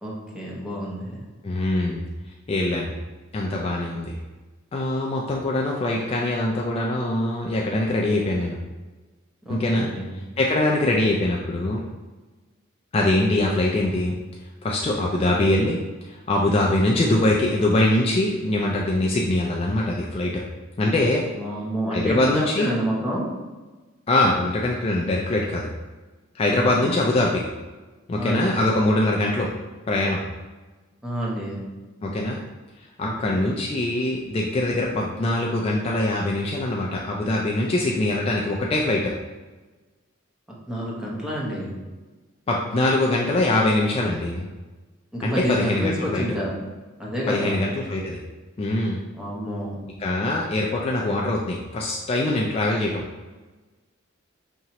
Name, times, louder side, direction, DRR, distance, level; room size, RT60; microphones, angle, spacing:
voice 1, 0.0-1.2 9.5-10.2 21.3-23.3 26.5-27.4 28.2-28.6 31.0-31.6 33.0-33.5 40.7-41.8 45.1-46.5 47.0-47.6 49.1-49.8, equal, 5° right, -5 dB, 0.8 m, -29 dB
voice 2, 1.4-2.0 2.5-2.9 3.3-4.1 4.7-8.6 9.5-9.9 10.4-11.8 12.9-14.2 14.6-15.8 16.1-20.4 20.8-21.2 21.9-22.7 24.1-25.7 26.3-27.4 28.1-29.5 29.9-30.2 32.0-32.4 33.0-39.1 42.5-44.5 45.2-46.2 47.3-48.2 48.6-49.0 50.0-53.0, left 1 dB, 30° left, -1 dB, 0.3 m, -23 dB
5.3 x 2.8 x 2.9 m, 1.2 s
head